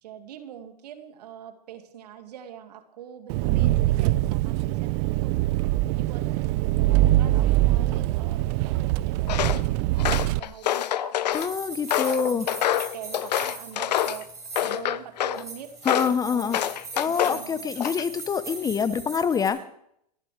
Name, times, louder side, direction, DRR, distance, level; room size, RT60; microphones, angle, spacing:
voice 1, 0.0-5.4 5.8-11.8 12.2-12.5 12.7-14.3 14.6-16.6 17.1-17.7, right 10 dB, 70° right, 7 dB, 2.1 m, -44 dB
Engine, 3.3-10.4, right 16 dB, 45° right, 0.6 m, -23 dB
Walk footsteps, 9.3-9.6 10.0-11.5 11.9-14.2 14.6-15.4 15.8-16.2 16.5-17.4 17.8-18.2, left 11 dB, 80° left, 0.8 m, -26 dB
voice 2, 11.3-12.5 15.8-16.6 17.0-19.6, left 6 dB, 15° left, 13 dB, 0.9 m, -26 dB
sound 1, 11.3-14.8 15.3-19.5, right 3 dB, 15° right, 7.0 m, -40 dB
30.0 x 11.5 x 3.3 m, 0.74 s
hypercardioid pair, 120°, 21 cm